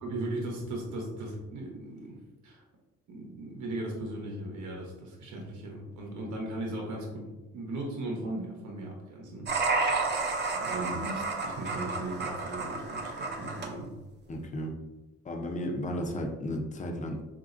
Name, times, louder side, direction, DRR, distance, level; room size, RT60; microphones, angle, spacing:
voice 1, 0.0-2.2 2.4-2.6 3.1-7.3 7.5-9.5 10.5-13.9, right 1 dB, 70° right, -1 dB, 0.8 m, -37 dB
sound 1, 9.5-13.7, right 3 dB, 35° right, 0.6 m, -31 dB
voice 2, 14.3-14.7 15.2-17.2, equal, 25° left, 2 dB, 0.6 m, -34 dB
3.8 x 2.5 x 2.5 m, 1.1 s
cardioid pair, 90°, 30 cm